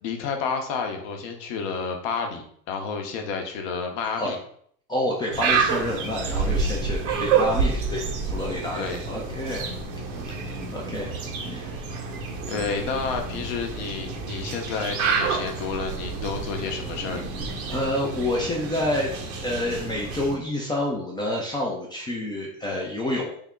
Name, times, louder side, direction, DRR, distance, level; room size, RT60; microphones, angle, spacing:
voice 1, 0.0-4.4 8.7-9.0 12.4-17.3, left 5 dB, 50° left, 4 dB, 0.9 m, -30 dB
voice 2, 4.9-9.6 9.9-10.4 10.7-11.8 12.1-12.2 17.7-19.1 19.4-23.4, left 1 dB, 10° left, -2 dB, 0.4 m, -29 dB
sound 1, 5.3-20.3, right 5 dB, 65° right, 1.0 m, -28 dB
3.6 x 2.1 x 3.6 m, 0.64 s
hypercardioid pair, 90°, 44 cm